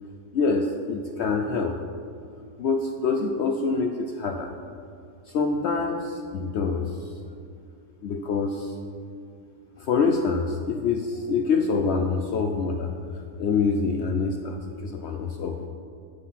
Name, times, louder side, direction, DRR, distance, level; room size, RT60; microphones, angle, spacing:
voice 1, 0.3-1.8 2.6-4.5 5.3-7.1 8.0-8.8 9.8-12.9 13.4-15.7, left 4 dB, 90° left, 4 dB, 0.6 m, -26 dB
10.0 x 6.5 x 5.8 m, 2.4 s
omnidirectional pair, 1.8 m